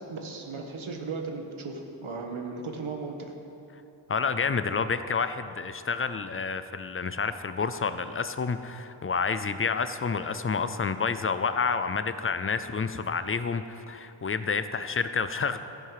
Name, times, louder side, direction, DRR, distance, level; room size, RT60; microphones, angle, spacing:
voice 1, 0.1-3.3, right 4 dB, 70° right, 3 dB, 1.4 m, -36 dB
voice 2, 4.1-15.6, left 5 dB, 30° left, 11 dB, 0.3 m, -29 dB
13.5 x 10.5 x 4.8 m, 2.9 s
wide cardioid pair, 180°, 50 cm